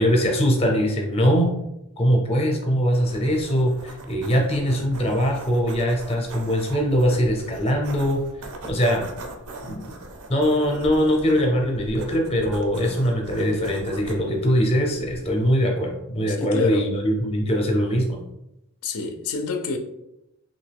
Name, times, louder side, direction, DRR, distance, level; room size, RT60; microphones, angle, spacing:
voice 1, 0.0-1.5 2.0-8.2 8.7-9.0 9.6-9.8 10.3-18.2, equal, 25° left, 0.5 m, -22 dB
sound 1, 2.9-15.7, right 2 dB, 80° right, 0.5 m, -41 dB
voice 2, 16.3-16.9 18.8-19.8, left 4 dB, 75° left, 0.4 m, -28 dB
3.0 x 2.6 x 3.3 m
head